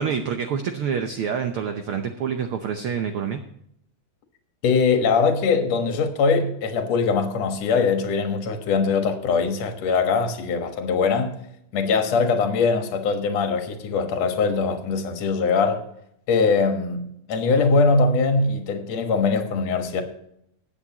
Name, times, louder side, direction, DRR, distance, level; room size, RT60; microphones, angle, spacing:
voice 1, 0.0-3.4, right 7 dB, 80° right, 1.2 m, -27 dB
voice 2, 4.6-11.3 11.7-15.8 16.3-20.0, left 4 dB, 60° left, 2.4 m, -22 dB
20.0 x 8.7 x 2.9 m
omnidirectional pair, 3.5 m